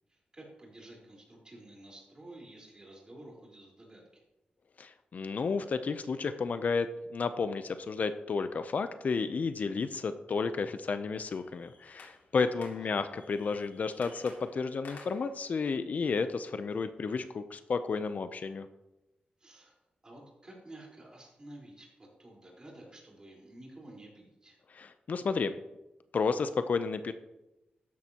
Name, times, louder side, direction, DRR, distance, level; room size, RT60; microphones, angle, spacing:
voice 1, 0.1-4.2 12.3-12.9 19.4-19.8 20.0-24.6, right 1 dB, 25° right, -2 dB, 4.2 m, -51 dB
voice 2, 4.8-18.7 24.7-25.5 26.1-27.1, left 4 dB, 55° left, 10 dB, 0.6 m, -32 dB
sound 1, 11.3-16.7, left 3 dB, 90° left, 2.4 m, -55 dB
13.5 x 10.5 x 2.9 m, 0.98 s
wide cardioid pair, 115°, 3 cm